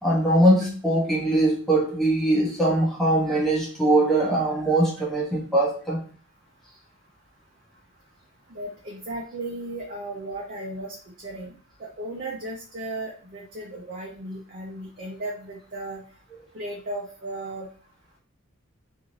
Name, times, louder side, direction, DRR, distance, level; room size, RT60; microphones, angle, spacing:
voice 1, 0.0-6.0, right 1 dB, ahead, 0.7 m, -21 dB
voice 2, 8.5-10.9 11.2-11.5 11.8-16.0 16.5-17.7, right 1 dB, 40° right, 0.5 m, -35 dB
2.6 x 2.5 x 3.0 m
head